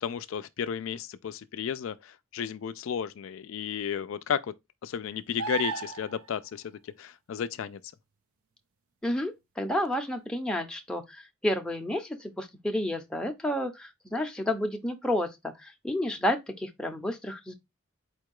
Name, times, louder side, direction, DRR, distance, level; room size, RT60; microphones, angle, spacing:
voice 1, 0.0-4.5 4.8-7.8, left 7 dB, 65° left, 0.3 m, -33 dB
sound 1, 5.4-6.3 9.8-9.9, right 6 dB, 80° right, 0.6 m, -34 dB
voice 2, 9.0-17.5, left 1 dB, 5° left, 0.6 m, -31 dB
4.4 x 2.3 x 4.6 m
head